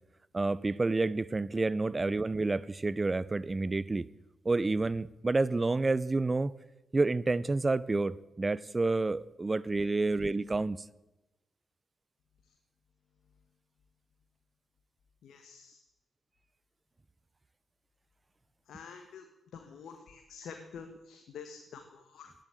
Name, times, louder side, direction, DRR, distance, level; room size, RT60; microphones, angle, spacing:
voice 1, 0.3-4.0 4.4-6.5 6.9-10.8, right 3 dB, 30° right, 0.6 m, -29 dB
voice 2, 15.2-15.8 18.6-19.3 19.5-22.3, left 6 dB, 75° left, 1.4 m, -48 dB
12.0 x 10.5 x 9.1 m
supercardioid pair, 45°, 0 cm